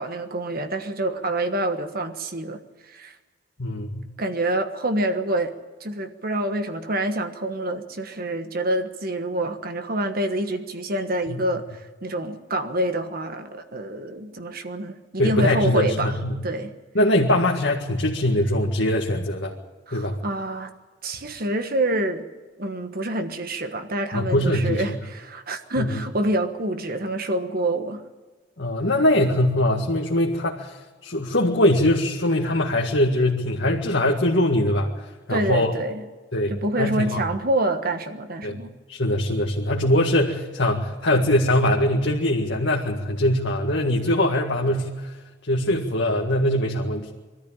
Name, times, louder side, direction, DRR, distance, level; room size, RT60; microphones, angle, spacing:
voice 1, 0.0-2.6 2.9-3.1 4.2-5.5 5.8-11.6 12.0-16.2 16.4-16.7 19.9-20.7 21.0-22.3 22.6-28.0 35.3-36.0 36.5-38.7, right 1 dB, 50° right, 1.4 m, -27 dB
voice 2, 3.6-4.0 11.3-11.4 15.2-16.4 16.9-19.5 19.9-20.2 24.1-25.0 25.8-26.0 28.6-30.8 31.0-34.9 35.3-35.7 36.3-37.2 38.4-38.6 38.9-45.1 45.5-47.1, left 1 dB, 65° left, 2.0 m, -22 dB
22.5 x 14.0 x 8.8 m
head